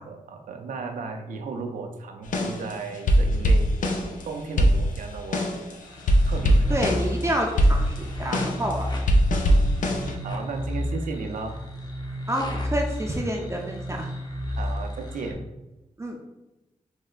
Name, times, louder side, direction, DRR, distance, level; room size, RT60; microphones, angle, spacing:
voice 1, 0.0-5.5 6.2-6.8 7.2-7.3 10.2-11.6 14.5-15.4, right 4 dB, 85° right, 4 dB, 0.4 m, -35 dB
sound 1, 2.3-4.2 4.6-5.7 6.0-7.2 7.6-10.2, equal, 75° left, 0.4 m, -21 dB
sound 2, 5.8-15.3, left 1 dB, 30° left, 0.7 m, -33 dB
voice 2, 6.7-8.9 12.3-12.5 12.7-14.1 16.0-16.3, right 1 dB, 20° right, 0 dB, 0.5 m, -28 dB
4.3 x 2.1 x 2.3 m, 0.98 s
cardioid pair, 50°, 13 cm